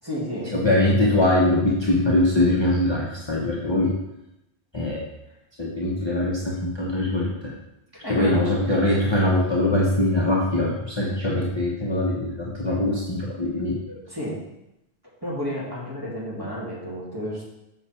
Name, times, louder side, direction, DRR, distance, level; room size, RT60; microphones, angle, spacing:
voice 1, 0.0-0.5 7.9-8.6 13.9-14.4 15.2-17.4, equal, 20° right, -7 dB, 2.6 m, -31 dB
voice 2, 0.5-3.9 4.7-5.1 5.6-7.5 8.1-13.8, left 1 dB, 25° left, -5 dB, 1.0 m, -22 dB
7.0 x 5.7 x 4.4 m, 0.90 s
omnidirectional pair, 1.1 m